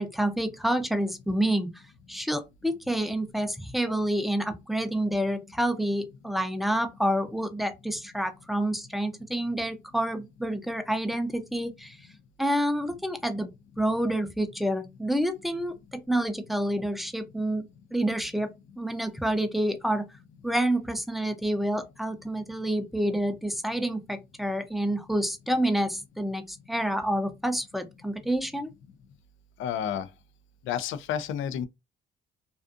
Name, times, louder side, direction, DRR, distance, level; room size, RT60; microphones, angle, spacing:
voice 1, 0.0-1.8 2.1-12.0 12.4-13.5 13.8-18.5 18.8-20.0 20.4-28.7, right 1 dB, ahead, 0.5 m, -28 dB
voice 2, 29.6-30.1 30.7-31.7, left 9 dB, 80° left, 0.4 m, -30 dB
2.4 x 2.4 x 2.4 m
cardioid pair, 90°, 20 cm